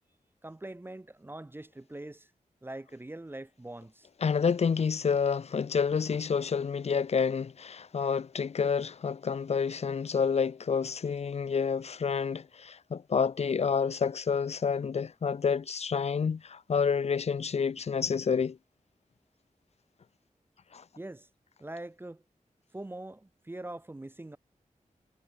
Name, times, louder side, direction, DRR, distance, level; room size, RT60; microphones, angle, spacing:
voice 1, 0.4-2.3 2.6-4.1 21.0-21.3 21.6-22.2 22.7-24.4, right 1 dB, 15° right, 0.4 m, -43 dB
voice 2, 4.2-18.6 20.7-20.8, left 6 dB, 50° left, 0.4 m, -29 dB
wide cardioid pair, 100°, 14 cm